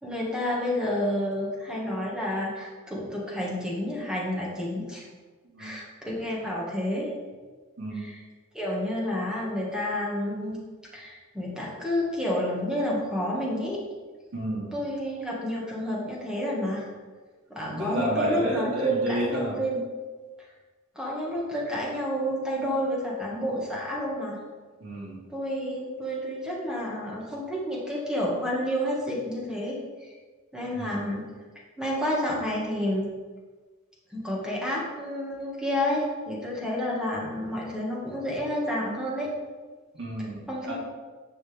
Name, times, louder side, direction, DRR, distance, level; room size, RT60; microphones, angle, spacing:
voice 1, 0.0-5.1 5.6-7.1 8.0-8.2 8.5-10.6 10.9-13.8 14.7-16.9 17.5-19.8 21.0-24.4 25.3-30.1 30.5-31.2 31.8-33.1 34.1-39.3 40.5-40.7, equal, 5° right, -4 dB, 2.0 m, -30 dB
voice 2, 14.3-14.7 17.7-19.5 24.8-25.3 30.7-31.1 39.9-40.7, right 1 dB, 65° right, -4 dB, 2.8 m, -30 dB
9.9 x 6.4 x 3.7 m, 1.4 s
head